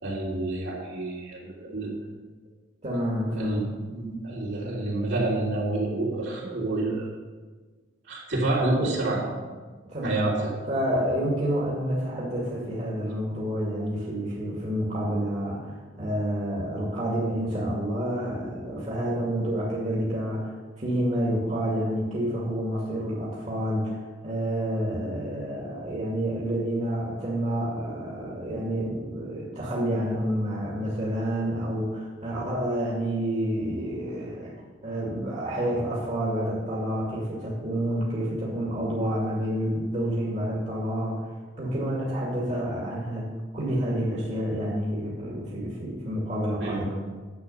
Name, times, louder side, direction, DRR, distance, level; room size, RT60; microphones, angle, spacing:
voice 1, 0.0-2.0 3.3-7.1 8.1-9.2 10.0-10.4 46.6-46.9, right 2 dB, 70° right, -5 dB, 3.5 m, -28 dB
voice 2, 2.8-3.6 9.9-10.3 10.7-34.5 34.8-41.2 41.6-46.9, equal, 40° right, -6 dB, 2.3 m, -29 dB
10.5 x 7.8 x 5.6 m, 1.4 s
head